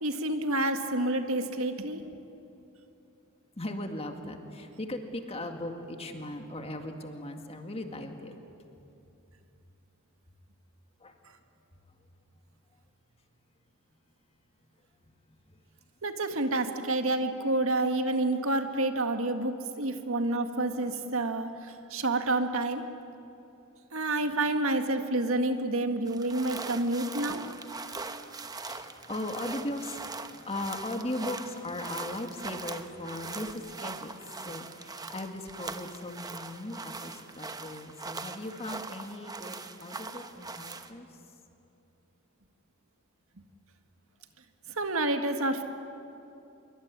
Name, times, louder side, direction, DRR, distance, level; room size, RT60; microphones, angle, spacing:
voice 1, 0.0-2.0 16.0-22.8 23.9-27.4 44.8-45.6, right 2 dB, 65° right, 6 dB, 1.9 m, -29 dB
voice 2, 3.6-8.4 11.0-11.2 15.5-15.6 20.8-20.9 28.6-34.1 34.4-41.1, left 1 dB, 25° left, 5 dB, 2.1 m, -38 dB
sound 1, 26.0-40.9, right 3 dB, 15° right, 1.0 m, -41 dB
26.0 x 23.5 x 9.7 m, 2.8 s
head